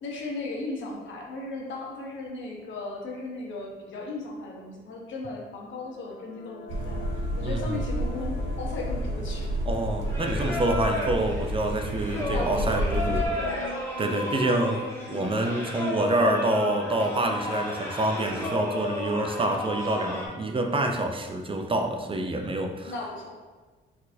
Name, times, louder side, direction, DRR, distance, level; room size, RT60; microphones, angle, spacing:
voice 1, 0.0-7.1 7.4-9.5 12.3-13.9 14.3-14.5 22.9-23.3, left 2 dB, 70° left, -1 dB, 1.1 m, -36 dB
sound 1, 5.6-19.2, left 4 dB, 55° left, 0.6 m, -45 dB
sound 2, 6.7-13.2, equal, 85° right, 0.8 m, -30 dB
voice 2, 7.4-7.8 9.7-13.2 14.0-22.9, right 1 dB, 25° right, 4 dB, 0.5 m, -27 dB
Singing, 10.1-20.3, left 2 dB, 10° left, 1.3 m, -33 dB
4.3 x 4.1 x 2.7 m, 1.3 s
cardioid pair, 90°, 20 cm